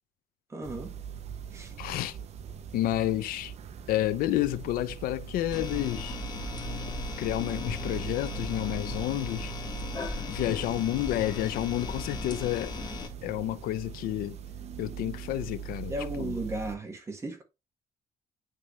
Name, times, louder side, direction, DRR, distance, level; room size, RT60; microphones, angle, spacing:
voice 1, 0.5-0.9 1.5-1.7 10.5-10.6 15.9-17.4, right 1 dB, 20° right, 1.6 m, -35 dB
sound 1, 0.6-16.8, right 8 dB, 45° right, 0.7 m, -41 dB
voice 2, 1.8-2.2 2.7-3.5 3.9-6.2 7.2-9.5 10.3-12.7 13.2-14.4 14.8-16.4, left 14 dB, 80° left, 0.6 m, -30 dB
sound 2, 5.5-13.1, left 4 dB, 30° left, 1.5 m, -37 dB
9.1 x 3.2 x 3.2 m
cardioid pair, 150°, 15 cm